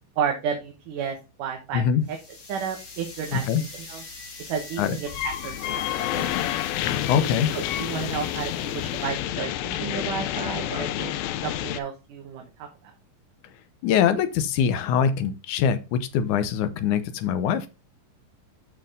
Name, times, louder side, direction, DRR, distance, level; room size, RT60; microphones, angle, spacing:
voice 1, 0.2-1.8 2.1-2.2 2.5-4.0 4.5-6.3 7.5-11.1 11.4-12.7, right 7 dB, 70° right, 2 dB, 2.5 m, -32 dB
voice 2, 1.7-2.0 3.3-3.6 4.8-5.0 7.1-7.5 13.8-17.7, left 8 dB, 70° left, 11 dB, 2.1 m, -23 dB
sound 1, 2.0-9.2, left 3 dB, 40° left, 1.0 m, -43 dB
sound 2, 5.1-11.8, left 12 dB, 90° left, 2.5 m, -29 dB
8.6 x 6.2 x 3.8 m, 0.29 s
omnidirectional pair, 4.1 m